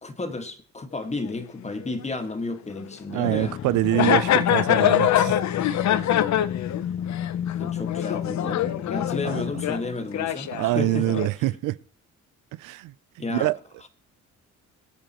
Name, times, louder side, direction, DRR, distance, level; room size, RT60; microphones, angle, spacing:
voice 1, 0.0-3.6 7.6-11.2 13.2-13.5, left 3 dB, 20° left, 1.8 m, -32 dB
sound 1, 1.3-1.4 1.8-1.9 2.8-2.9 3.4-3.5 3.9-9.9 10.1-11.3, left 11 dB, 65° left, 0.9 m, -24 dB
voice 2, 3.1-5.4 9.2-9.4 10.5-11.8 12.6-12.9 13.3-13.6, right 18 dB, 90° right, 0.5 m, -25 dB
sound 2, 3.2-10.0, left 9 dB, 45° left, 0.5 m, -32 dB
23.0 x 8.9 x 3.1 m
cardioid pair, 90°, 30 cm